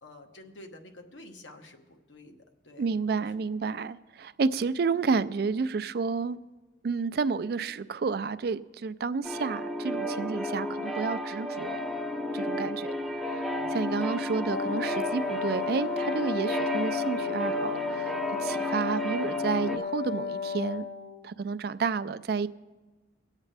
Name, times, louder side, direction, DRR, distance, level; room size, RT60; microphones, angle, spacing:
voice 1, 0.0-2.4 2.6-3.3 13.6-14.3, left 1 dB, 80° left, 1.1 m, -50 dB
voice 2, 2.8-6.4 6.8-11.8 12.3-12.9 13.2-20.8 21.2-22.5, right 5 dB, 55° right, 0.3 m, -30 dB
sound 1, 9.2-19.8, left 1 dB, ahead, 0.5 m, -32 dB
Wind instrument woodwind instrument, 14.5-21.2, left 6 dB, 60° left, 0.8 m, -34 dB
23.0 x 8.2 x 3.3 m
head